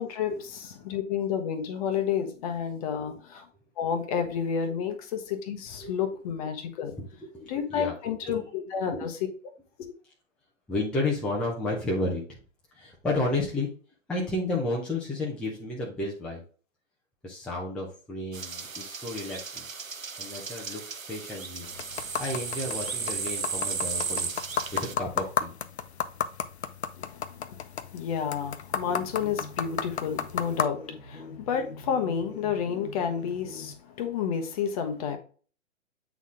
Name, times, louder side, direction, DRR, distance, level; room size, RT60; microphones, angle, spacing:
voice 1, 0.0-3.5 3.8-7.0 7.5-9.2 9.8-9.9 27.0-27.6 27.9-35.2, left 7 dB, 30° left, 1.0 m, -30 dB
voice 2, 2.9-3.2 5.8-5.9 7.0-7.9 8.3-8.4 8.9-9.1 10.7-12.2 12.7-13.7 14.1-16.4 17.2-19.6 20.2-21.7 22.2-24.3 24.7-25.5, left 2 dB, ahead, 0.7 m, -32 dB
sound 1, 18.3-25.0, right 5 dB, 90° right, 0.8 m, -35 dB
sound 2, 21.6-30.6, left 7 dB, 55° left, 0.7 m, -34 dB
sound 3, 28.7-33.8, left 2 dB, 85° left, 1.4 m, -44 dB
8.2 x 4.0 x 3.7 m
figure-of-eight pair, 125°, 39 cm